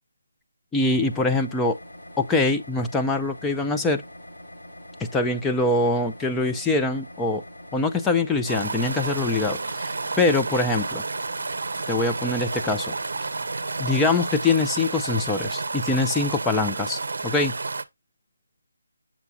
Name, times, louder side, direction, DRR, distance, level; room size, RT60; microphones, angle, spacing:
voice 1, 0.7-1.8 2.2-4.0 5.0-7.4 7.7-11.0 11.9-12.9 13.8-17.5, left 3 dB, 5° left, 0.5 m, -24 dB
sound 1, 0.8-15.4, left 1 dB, 85° left, 4.5 m, -44 dB
sound 2, 8.5-17.8, right 3 dB, 65° right, 0.7 m, -30 dB
7.3 x 6.7 x 2.3 m
figure-of-eight pair, 160°, 0 cm